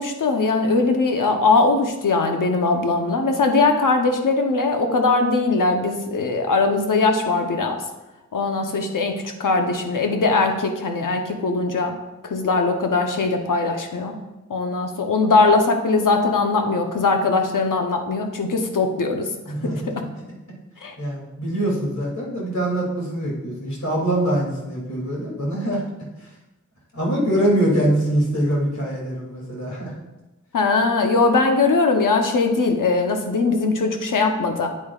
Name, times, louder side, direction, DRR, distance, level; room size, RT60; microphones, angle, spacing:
voice 1, 0.0-7.8 8.3-12.0 12.2-14.2 14.5-19.3 19.6-20.0 20.8-21.0 30.5-34.7, left 3 dB, 85° left, 4 dB, 0.9 m, -20 dB
voice 2, 19.5-19.9 21.0-25.9 26.2-26.3 26.9-29.9, right 1 dB, 60° left, -4 dB, 2.8 m, -23 dB
8.6 x 8.6 x 2.4 m, 1.0 s
wide cardioid pair, 105°, 31 cm